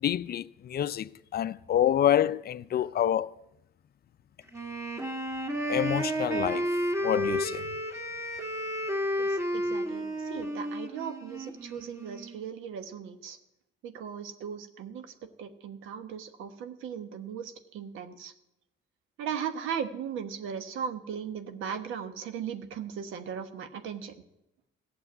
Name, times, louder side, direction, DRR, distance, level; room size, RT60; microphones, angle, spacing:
voice 1, 0.0-3.3 5.7-6.7 7.0-7.6, left 10 dB, 50° left, 0.5 m, -27 dB
Wind instrument woodwind instrument, 4.5-12.4, equal, 15° right, 2.3 m, -32 dB
voice 2, 9.2-13.4 13.8-18.3 19.2-24.1, right 7 dB, 90° right, 1.2 m, -38 dB
14.5 x 6.9 x 9.4 m
cardioid pair, 90°, 20 cm